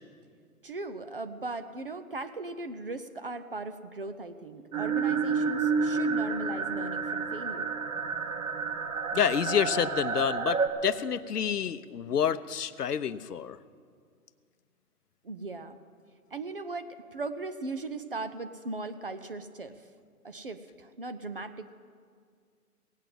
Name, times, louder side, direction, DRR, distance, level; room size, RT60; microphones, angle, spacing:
voice 1, 0.6-7.7 15.2-15.8 16.3-19.8 20.2-21.6, right 3 dB, 40° right, 10 dB, 0.6 m, -38 dB
sound 1, 4.7-10.7, right 5 dB, 60° right, 1.5 m, -30 dB
voice 2, 9.1-13.6, left 8 dB, 90° left, 14 dB, 0.8 m, -28 dB
18.0 x 8.3 x 7.6 m, 2.1 s
hypercardioid pair, 165°, 46 cm